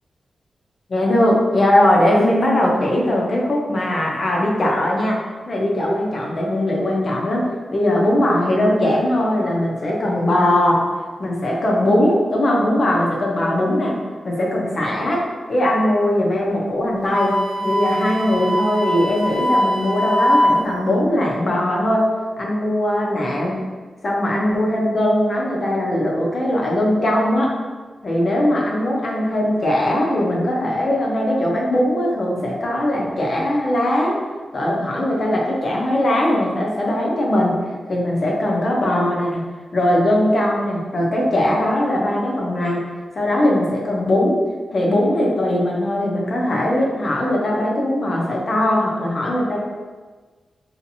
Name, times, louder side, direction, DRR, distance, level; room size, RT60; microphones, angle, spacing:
voice 1, 0.9-5.2 5.5-10.9 11.2-14.0 14.2-15.2 15.5-22.1 22.4-23.6 24.0-27.5 28.0-34.2 34.5-37.6 37.9-39.4 39.7-42.9 43.1-44.4 44.7-49.6, left 1 dB, 45° left, -3 dB, 0.6 m, -20 dB
Wind instrument woodwind instrument, 17.1-20.7, equal, 90° right, 0.5 m, -21 dB
2.7 x 2.4 x 2.6 m, 1.4 s
wide cardioid pair, 140°, 0 cm